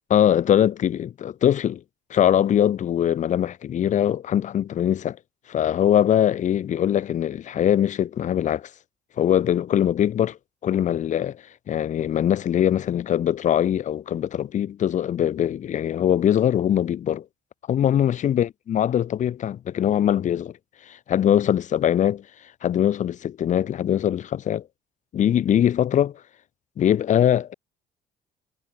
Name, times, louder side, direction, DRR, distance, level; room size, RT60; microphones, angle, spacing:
voice 1, 0.1-1.8 2.1-5.2 5.5-8.7 9.2-10.4 10.6-17.2 17.7-20.5 20.9-22.2 22.6-24.6 25.1-26.1 26.8-27.5, left 10 dB, 45° left, 0.8 m, -22 dB
cardioid pair, 110°, 17 cm